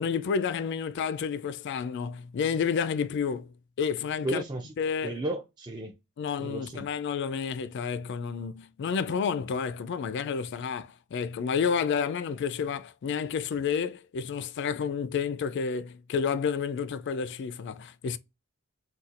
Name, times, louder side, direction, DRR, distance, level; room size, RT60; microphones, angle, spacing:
voice 1, 0.0-4.4 4.8-5.2 6.2-18.2, left 6 dB, 55° left, 0.3 m, -30 dB
voice 2, 4.2-4.7 5.0-5.9 6.4-6.9, right 1 dB, 20° right, 0.4 m, -33 dB
4.1 x 2.2 x 2.4 m
head